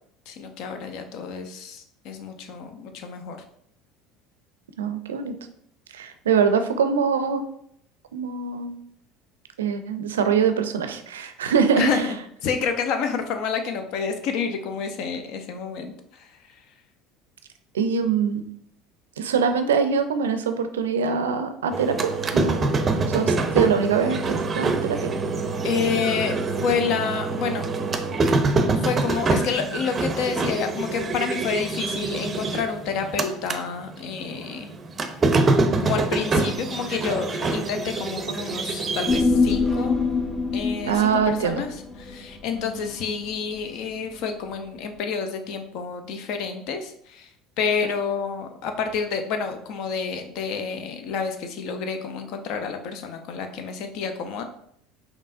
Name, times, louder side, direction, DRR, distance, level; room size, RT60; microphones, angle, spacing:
voice 1, 0.3-3.4 11.8-16.4 25.6-27.7 28.8-34.7 35.8-40.1 40.5-47.3 47.6-54.4, left 6 dB, 60° left, 6 dB, 0.6 m, -29 dB
voice 2, 4.8-5.3 5.9-7.5 8.1-8.8 9.6-12.1 17.7-18.4 19.2-22.7 23.1-25.1 40.9-41.6, right 6 dB, 85° right, 9 dB, 0.4 m, -23 dB
sound 1, 21.7-33.6 34.0-39.2, right 3 dB, 30° right, 0.5 m, -25 dB
Human voice, 39.1-43.7 44.0-44.1, left 4 dB, 20° left, 1.0 m, -25 dB
5.3 x 3.0 x 2.5 m, 0.70 s
hypercardioid pair, 70°, 0 cm